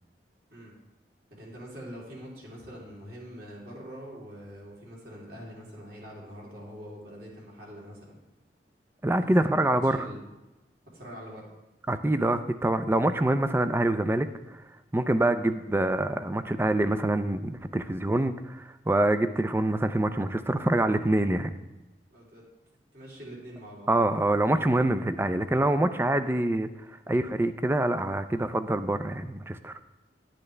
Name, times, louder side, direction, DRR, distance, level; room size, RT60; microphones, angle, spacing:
voice 1, 1.3-8.2 9.4-10.2 10.9-11.5 22.1-22.4 22.9-23.9, equal, 60° right, -4 dB, 3.2 m, -44 dB
voice 2, 9.0-10.1 11.9-14.3 14.9-21.5 23.9-26.7 27.1-29.7, right 1 dB, 15° right, 11 dB, 0.4 m, -25 dB
10.5 x 10.0 x 3.3 m, 1.0 s
head